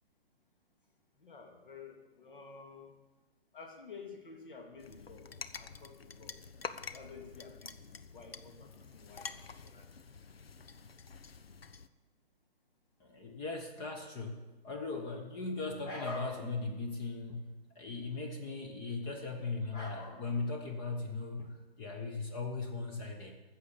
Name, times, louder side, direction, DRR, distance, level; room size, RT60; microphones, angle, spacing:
voice 1, 1.2-2.9 3.5-6.4 6.9-9.9, left 5 dB, 55° left, 3 dB, 2.6 m, -52 dB
sound 1, 4.8-11.9, left 5 dB, 70° left, 0.8 m, -47 dB
voice 2, 13.0-23.3, left 3 dB, 15° left, 4 dB, 0.9 m, -38 dB
14.5 x 7.3 x 7.0 m, 1.2 s
figure-of-eight pair, 130°, 31 cm